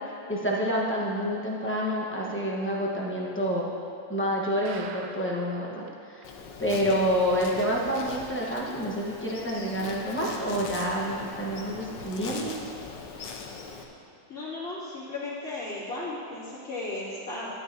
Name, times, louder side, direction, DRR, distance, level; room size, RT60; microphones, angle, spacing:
voice 1, 0.3-3.7 4.1-6.2 6.6-12.5, equal, 10° left, -4 dB, 0.7 m, -28 dB
sound 1, 4.7-5.5 5.9-6.0 6.2-6.3 6.8-6.9, right 6 dB, 85° right, 1.3 m, -43 dB
Insect, 6.2-13.8, left 4 dB, 85° left, 1.5 m, -40 dB
voice 2, 14.3-17.5, left 2 dB, 50° left, -9 dB, 2.8 m, -35 dB
12.0 x 9.7 x 2.7 m, 2.7 s
omnidirectional pair, 1.9 m